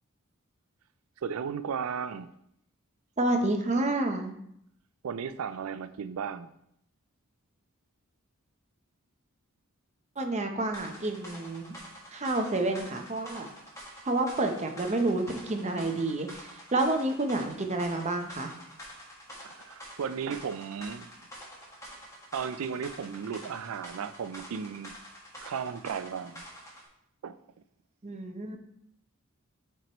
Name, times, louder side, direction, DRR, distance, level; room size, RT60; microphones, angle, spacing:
voice 1, 1.2-2.3 5.0-6.5 19.4-21.1 22.3-24.9 25.4-26.5 27.2-27.4, right 6 dB, 75° right, 0.4 m, -35 dB
voice 2, 3.2-4.3 10.2-11.7 12.1-13.5 14.0-16.4 16.7-18.5 28.0-28.6, right 2 dB, 30° right, 0.7 m, -29 dB
sound 1, 10.7-26.9, equal, 15° left, 1.5 m, -47 dB
7.8 x 4.6 x 3.0 m
head